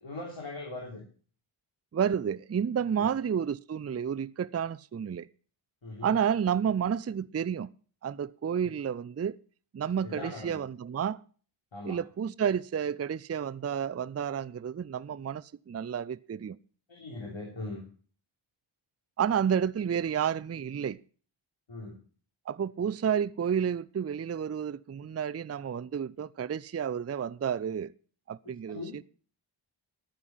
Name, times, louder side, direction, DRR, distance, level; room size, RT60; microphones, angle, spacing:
voice 1, 0.0-1.0 2.9-3.1 5.8-6.1 10.0-10.6 11.7-12.0 16.9-17.8 21.7-22.0 28.7-29.0, left 2 dB, 65° left, 3.7 m, -40 dB
voice 2, 1.9-5.3 6.0-7.7 8.0-9.4 9.7-11.2 11.8-16.6 19.2-21.0 22.5-27.9 28.3-29.0, right 8 dB, 30° right, 0.5 m, -30 dB
12.0 x 9.8 x 5.5 m
wide cardioid pair, 75°, 50 cm